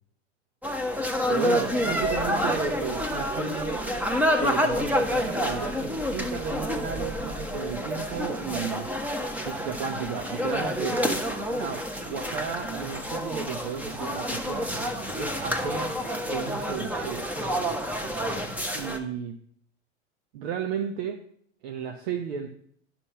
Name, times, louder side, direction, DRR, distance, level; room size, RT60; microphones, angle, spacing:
sound 1, 0.6-19.0, equal, 5° right, 1.1 m, -28 dB
voice 1, 1.3-3.9 4.4-8.9 9.4-14.7 15.1-17.3 18.7-19.4 20.3-21.2 21.6-22.5, right 7 dB, 65° right, 4 dB, 1.0 m, -33 dB
9.7 x 6.0 x 5.5 m, 0.62 s
hypercardioid pair, 95°, 34 cm